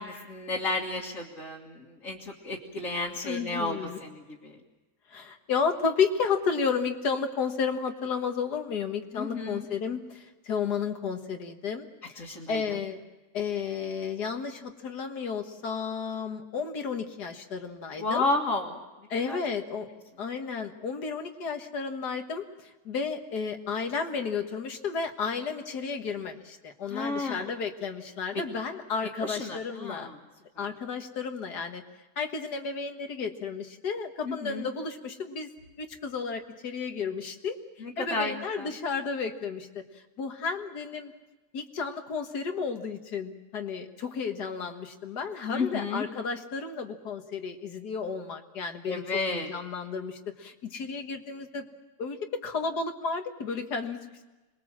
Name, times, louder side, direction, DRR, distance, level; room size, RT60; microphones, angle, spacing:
voice 1, 0.0-4.6 9.1-9.7 12.2-12.8 18.0-18.8 19.3-19.4 26.9-27.5 29.2-30.1 30.6-30.7 34.2-34.7 37.8-38.7 45.5-46.0 48.9-49.5, left 3 dB, 55° left, -4 dB, 2.3 m, -32 dB
voice 2, 3.2-4.0 5.1-13.0 13.3-18.3 19.1-19.9 20.2-30.1 30.6-31.8 32.2-35.5 35.8-37.6 38.0-39.8 40.2-41.1 41.5-51.7 52.0-54.2, left 5 dB, 90° left, 5 dB, 2.1 m, -32 dB
26.0 x 21.5 x 7.4 m, 1.1 s
omnidirectional pair, 1.7 m